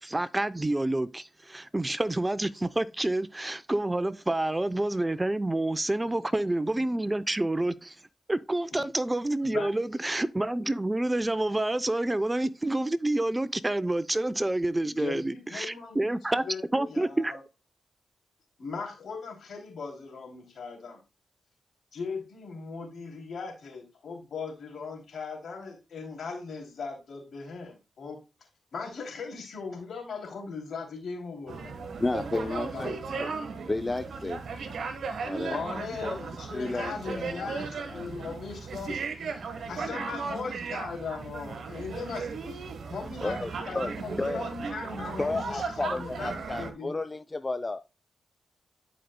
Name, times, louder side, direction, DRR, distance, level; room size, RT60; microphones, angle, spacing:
voice 1, 0.0-8.0 8.3-16.4 16.7-17.3, right 1 dB, 20° right, 0.5 m, -28 dB
voice 2, 9.4-9.9 14.8-16.2 16.4-17.4 18.6-21.0 21.9-28.2 28.7-33.3 35.5-46.9, left 5 dB, 70° left, 2.8 m, -39 dB
sound 1, 31.5-46.7, right 5 dB, 70° right, 1.3 m, -36 dB
voice 3, 32.0-33.3 33.7-34.4 35.2-35.6 36.0-36.2 36.5-37.5 37.9-38.0 43.2-43.5 43.7-43.9 44.2-44.4 45.2-47.8, left 2 dB, 30° left, 0.4 m, -32 dB
11.0 x 5.0 x 2.2 m
supercardioid pair, 45°, 0 cm